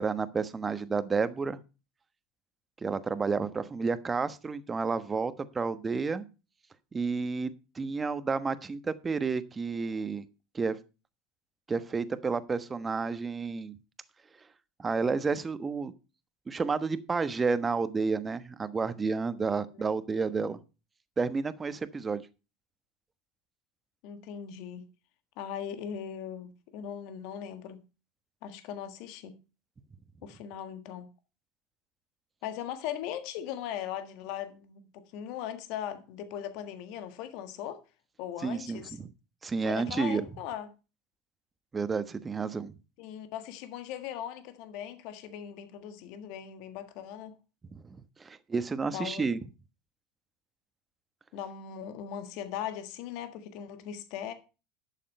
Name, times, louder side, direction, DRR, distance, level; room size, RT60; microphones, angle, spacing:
voice 1, 0.0-1.6 2.8-6.3 6.9-7.5 7.7-10.3 10.5-10.8 11.7-13.7 14.8-15.9 16.5-20.6 21.2-22.2 38.4-39.1 39.4-40.3 41.7-42.7 47.7-49.4, right 4 dB, 25° right, 1.2 m, -31 dB
voice 2, 24.0-24.8 25.4-27.8 28.4-29.4 30.2-31.1 32.4-37.8 38.2-39.0 39.6-40.7 43.0-47.3 48.9-49.3 51.3-54.3, left 9 dB, 65° left, 1.5 m, -39 dB
11.0 x 7.4 x 5.5 m
hypercardioid pair, 85°, 0 cm